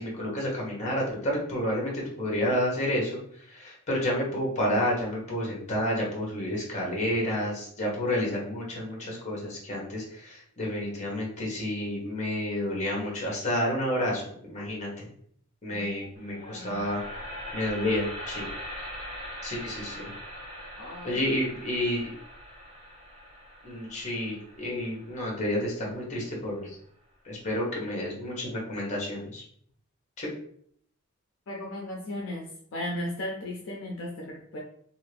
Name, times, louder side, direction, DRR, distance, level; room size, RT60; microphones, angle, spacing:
voice 1, 0.0-15.1 15.6-17.0 17.5-18.5 19.4-20.1 21.0-22.1 23.6-26.8 27.2-29.4 30.2-30.3, left 1 dB, 35° left, -2 dB, 1.0 m, -30 dB
voice 2, 15.7-16.1 16.3-16.8 20.8-21.2 31.5-34.6, left 1 dB, 60° left, -1 dB, 0.5 m, -36 dB
sound 1, 16.2-26.3, equal, 25° right, 0.8 m, -41 dB
2.7 x 2.5 x 3.2 m, 0.64 s
head